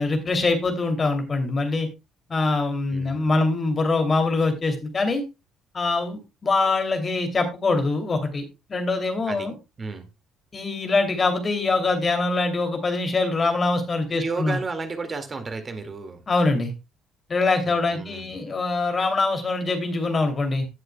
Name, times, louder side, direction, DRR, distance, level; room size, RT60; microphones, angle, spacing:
voice 1, 0.0-1.9 2.3-5.2 5.7-9.5 10.5-14.6 16.3-16.7 17.3-20.7, left 3 dB, 35° left, 6 dB, 2.6 m, -23 dB
voice 2, 2.9-3.3 9.3-9.5 9.8-10.1 14.1-16.2 17.6-18.3, right 4 dB, 35° right, 8 dB, 2.0 m, -33 dB
16.5 x 6.6 x 2.2 m, 0.25 s
hypercardioid pair, 55°, 0 cm